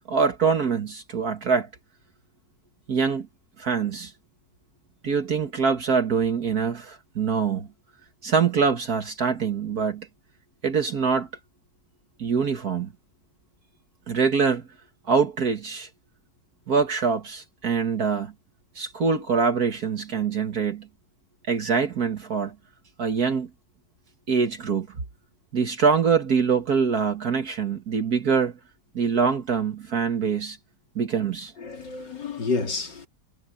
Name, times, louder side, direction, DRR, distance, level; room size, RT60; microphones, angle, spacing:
voice 1, 0.1-1.7 2.9-3.3 3.6-4.1 5.0-7.7 8.2-10.1 10.6-11.3 12.2-12.9 14.1-14.7 15.1-15.9 16.7-18.3 18.8-20.9 21.5-22.5 23.0-23.5 24.3-24.9 25.5-28.6 28.9-30.6 31.0-31.5, right 5 dB, 60° right, 2.1 m, -24 dB
voice 2, 31.6-33.1, left 4 dB, 85° left, 4.0 m, -29 dB
omnidirectional pair, 1.9 m